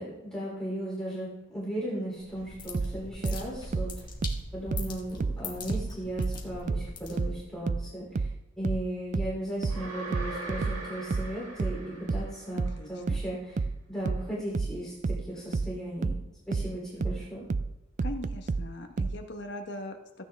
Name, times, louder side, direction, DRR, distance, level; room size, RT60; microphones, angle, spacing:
voice 1, 0.0-4.1 4.5-8.3 8.6-13.6 13.9-16.1 16.5-17.4, right 1 dB, 5° left, -8 dB, 3.0 m, -36 dB
sound 1, 2.1-7.6, left 3 dB, 20° left, 1.7 m, -42 dB
sound 2, 2.7-5.9 6.2-19.2, right 4 dB, 35° right, 0.3 m, -30 dB
sound 3, 9.7-12.8, right 2 dB, 80° right, 2.4 m, -41 dB
voice 2, 12.5-13.2 18.0-20.2, left 1 dB, 55° left, 4 dB, 1.2 m, -40 dB
15.0 x 9.1 x 3.4 m, 0.98 s
head